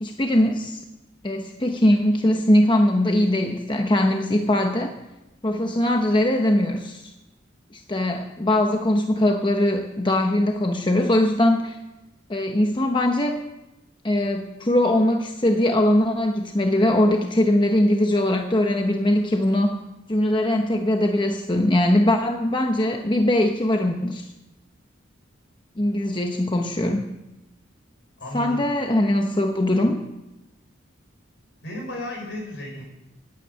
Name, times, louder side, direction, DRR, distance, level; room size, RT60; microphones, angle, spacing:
voice 1, 0.0-0.8 1.2-4.9 5.4-7.1 7.7-11.8 12.3-13.4 14.0-19.8 20.1-24.3 25.8-27.1 28.3-30.0, left 1 dB, 25° left, 3 dB, 0.9 m, -21 dB
voice 2, 28.2-28.6 31.6-32.8, left 1 dB, 65° left, 1 dB, 4.9 m, -33 dB
12.0 x 9.9 x 8.0 m, 0.99 s
head